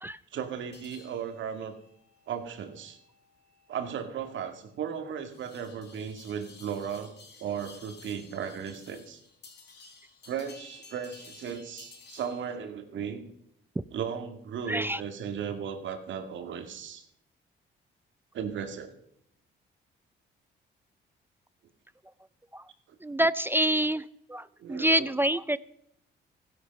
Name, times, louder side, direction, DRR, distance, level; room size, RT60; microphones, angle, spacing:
voice 1, 0.3-1.7 2.3-3.0 3.7-9.2 10.3-13.2 13.9-17.0 18.3-18.9 24.6-25.1, right 7 dB, 70° right, 7 dB, 2.1 m, -36 dB
sound 1, 0.7-12.6, left 4 dB, 60° left, 4.3 m, -54 dB
voice 2, 14.7-15.0 22.5-22.6 23.0-24.0 24.3-25.6, right 1 dB, 10° right, 17 dB, 0.4 m, -26 dB
15.5 x 11.5 x 5.4 m, 0.75 s
cardioid pair, 90°, 20 cm